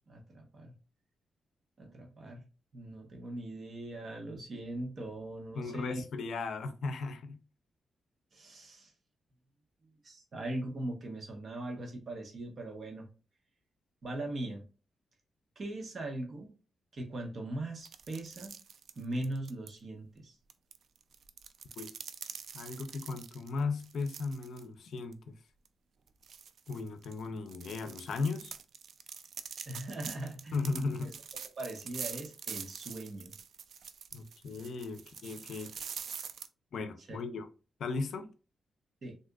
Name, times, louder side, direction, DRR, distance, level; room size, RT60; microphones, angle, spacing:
voice 1, 0.1-0.7 1.8-2.4 2.7-6.0 8.3-8.9 10.0-13.1 14.0-14.6 15.6-16.5 16.9-18.5 19.0-20.3 29.7-30.5 31.6-33.3 37.1-37.2 39.0-39.2, right 1 dB, 50° right, 1.0 m, -40 dB
voice 2, 5.5-7.4 21.8-21.9 22.5-25.3 26.7-28.5 30.5-31.2 34.1-35.7 36.7-37.5 37.8-38.3, left 4 dB, 75° left, 0.4 m, -36 dB
sound 1, 17.8-19.7 20.5-24.6 25.0-25.1 25.6-25.7 26.2-36.5, right 7 dB, 70° right, 0.3 m, -45 dB
3.6 x 2.6 x 2.3 m
cardioid pair, 100°, 0 cm